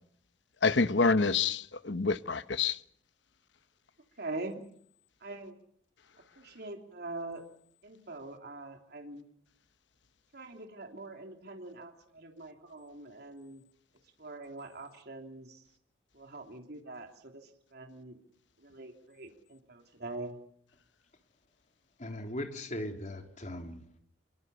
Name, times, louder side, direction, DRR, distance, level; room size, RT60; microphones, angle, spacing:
voice 1, 0.6-2.8, left 4 dB, 75° left, 1.1 m, -27 dB
voice 2, 4.2-4.6 5.2-5.6 6.3-7.4 7.8-9.2 10.3-13.6 14.2-15.6 16.1-18.2 18.6-20.4, right 2 dB, 60° right, 3.2 m, -43 dB
voice 3, 22.0-23.8, left 1 dB, 45° left, 3.6 m, -39 dB
26.5 x 23.5 x 7.0 m
head